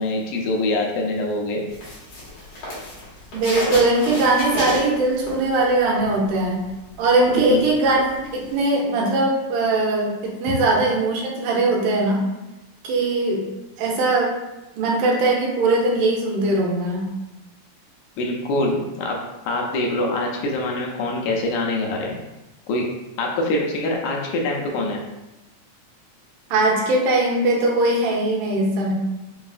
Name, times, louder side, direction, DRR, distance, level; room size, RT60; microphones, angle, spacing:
voice 1, 0.0-1.6 7.3-7.6 18.2-19.2 19.5-22.2 22.7-22.9 23.2-25.0, left 2 dB, 80° left, 0 dB, 1.9 m, -24 dB
sound 1, 1.7-5.9 6.2-8.6, left 1 dB, 60° left, 2.2 m, -31 dB
voice 2, 3.3-6.6 7.0-8.0 8.3-12.2 12.8-13.4 13.8-14.3 14.8-17.0 26.5-28.9, right 2 dB, 85° right, -2 dB, 2.2 m, -20 dB
5.3 x 2.4 x 2.4 m, 1.0 s
omnidirectional pair, 3.6 m